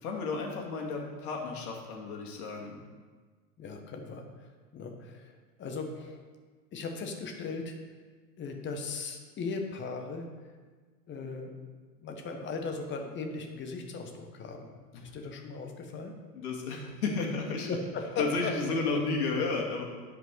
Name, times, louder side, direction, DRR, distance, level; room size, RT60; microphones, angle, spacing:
voice 1, 0.0-2.7 14.9-15.1 16.3-17.7 18.2-19.8, left 3 dB, 60° left, 0 dB, 2.2 m, -32 dB
voice 2, 3.6-6.2 6.7-7.7 8.4-10.5 11.1-11.5 12.0-14.7 15.0-16.1 17.7-18.5, left 4 dB, 20° left, 3 dB, 1.2 m, -38 dB
11.0 x 5.2 x 4.7 m, 1.4 s
hypercardioid pair, 105°, 50 cm